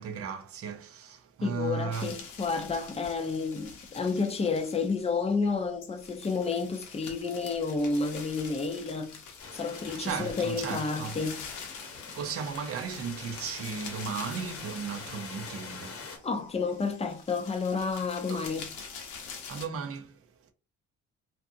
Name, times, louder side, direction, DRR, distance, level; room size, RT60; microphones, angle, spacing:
voice 1, 0.0-2.2 10.0-11.2 12.1-16.3 18.3-18.4 19.5-20.2, right 6 dB, 50° right, 0.6 m, -36 dB
voice 2, 1.4-9.2 9.5-11.4 16.2-18.7, left 4 dB, 20° left, 0.5 m, -30 dB
sound 1, 1.9-19.7, left 5 dB, 85° left, 0.8 m, -46 dB
sound 2, 9.4-16.2, left 4 dB, 50° left, 0.8 m, -44 dB
2.6 x 2.5 x 2.5 m
cardioid pair, 90°, 30 cm